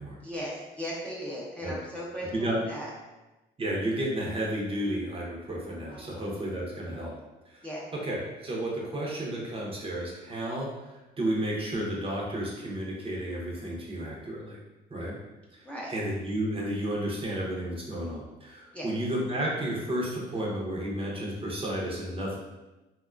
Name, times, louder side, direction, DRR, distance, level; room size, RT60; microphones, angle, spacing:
voice 1, 0.2-2.9 5.9-6.2 7.6-7.8 15.6-15.9 18.7-18.9, equal, 5° left, -5 dB, 0.5 m, -37 dB
voice 2, 3.6-7.1 7.5-7.6 7.9-14.6 14.9-15.2 15.5-15.6 15.9-22.4, right 1 dB, 30° right, -3 dB, 0.7 m, -32 dB
2.8 x 2.2 x 2.4 m, 1.1 s
cardioid pair, 90°, 19 cm